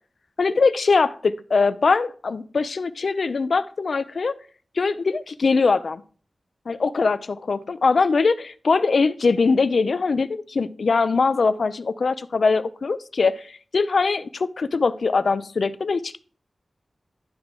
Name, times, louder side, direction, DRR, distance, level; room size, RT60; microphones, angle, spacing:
voice 1, 0.4-4.3 4.8-6.0 6.7-16.2, left 4 dB, 75° left, 0.5 m, -22 dB
11.0 x 4.8 x 3.7 m
wide cardioid pair, 90°, 0 cm